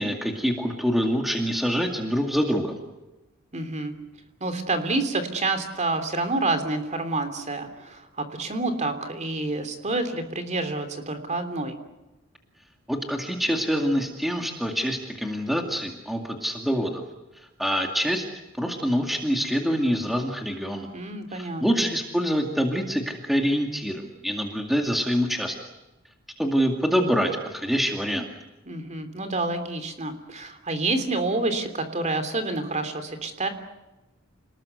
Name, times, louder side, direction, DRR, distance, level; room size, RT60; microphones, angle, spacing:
voice 1, 0.0-2.8 12.9-17.0 17.6-18.3 18.6-20.9 21.3-25.6 26.4-28.3, equal, ahead, 3 dB, 2.2 m, -25 dB
voice 2, 3.5-3.9 4.4-11.8 20.9-21.9 28.7-33.5, right 2 dB, 35° right, 8 dB, 3.1 m, -28 dB
28.5 x 20.0 x 8.0 m, 1.0 s
head